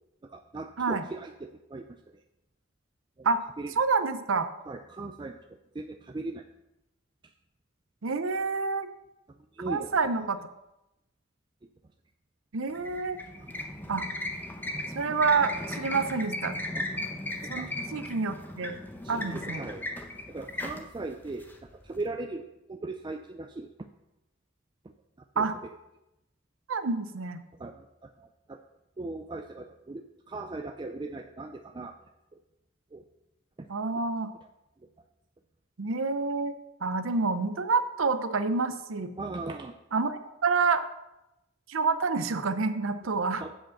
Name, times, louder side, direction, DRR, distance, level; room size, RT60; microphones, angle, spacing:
voice 1, 0.2-1.8 3.2-3.3 3.6-3.7 4.7-5.4 5.8-6.4 9.6-10.0 16.7-16.8 17.5-17.7 19.0-19.8 20.3-21.5 21.8-23.7 25.4-25.5 27.6-27.8 28.2-28.6 29.0-30.0 30.3-31.9 32.9-33.0 33.6-33.7 39.2-39.8 43.4-43.5, right 2 dB, 20° right, 5 dB, 0.4 m, -38 dB
voice 2, 3.7-4.5 8.0-8.9 9.7-10.4 12.5-13.2 13.9-14.1 14.9-16.6 17.5-18.8 19.1-19.6 25.4-25.6 26.7-27.4 33.7-34.3 35.8-36.5 36.8-39.1 39.9-40.9 41.7-43.4, right 4 dB, 70° right, 11 dB, 0.7 m, -28 dB
sound 1, 12.7-22.0, left 1 dB, 10° left, 0.8 m, -37 dB
8.0 x 5.1 x 7.2 m, 0.92 s
head